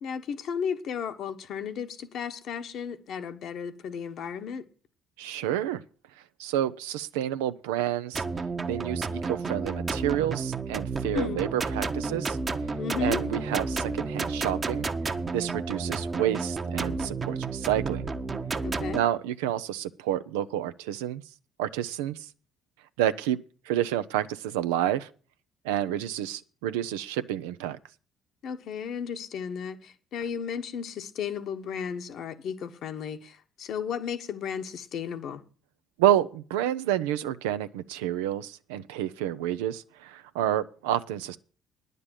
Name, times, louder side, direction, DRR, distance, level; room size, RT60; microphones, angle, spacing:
voice 1, 0.0-4.7 11.0-11.5 12.8-13.2 18.6-19.0 28.4-35.4, left 7 dB, 65° left, 1.2 m, -34 dB
voice 2, 5.2-5.8 6.4-8.2 8.7-12.4 13.0-14.9 15.3-18.1 18.9-21.2 21.6-22.3 23.0-23.4 23.7-25.1 25.6-27.8 36.0-41.4, right 12 dB, 90° right, 0.6 m, -29 dB
sound 1, 8.1-19.0, right 4 dB, 35° right, 1.1 m, -31 dB
9.9 x 6.7 x 8.9 m
supercardioid pair, 65°, 0 cm